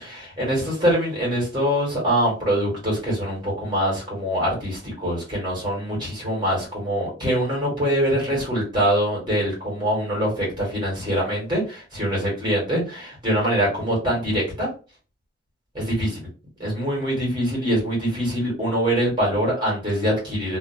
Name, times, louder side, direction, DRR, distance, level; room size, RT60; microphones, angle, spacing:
voice 1, 0.0-14.7 15.7-16.2 16.6-20.6, equal, 20° right, -5 dB, 1.5 m, -24 dB
2.7 x 2.2 x 2.6 m, 0.33 s
head